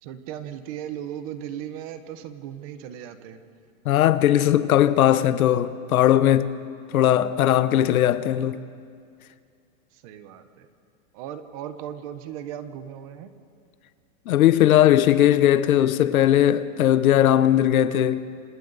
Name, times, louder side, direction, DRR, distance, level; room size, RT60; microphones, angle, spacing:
voice 1, 0.0-3.4 9.9-10.7 11.1-13.3, right 10 dB, 25° right, 0.8 m, -37 dB
voice 2, 3.8-6.5 6.9-8.6 14.3-18.2, left 12 dB, 85° left, 1.1 m, -19 dB
27.0 x 26.5 x 4.1 m
supercardioid pair, 175°, 41 cm